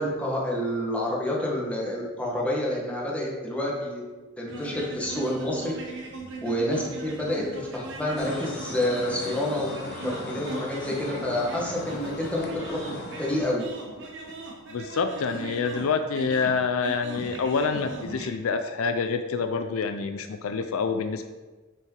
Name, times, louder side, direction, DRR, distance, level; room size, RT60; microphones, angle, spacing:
voice 1, 0.0-4.0 4.4-5.7 6.4-13.6, left 1 dB, 5° left, -4 dB, 1.3 m, -28 dB
sound 1, 4.5-18.4, right 2 dB, 60° right, 1.1 m, -39 dB
sound 2, 8.2-13.4, left 2 dB, 50° left, 1.0 m, -39 dB
voice 2, 14.7-21.2, left 5 dB, 70° left, 7 dB, 0.4 m, -27 dB
6.3 x 4.7 x 4.5 m, 1.3 s
head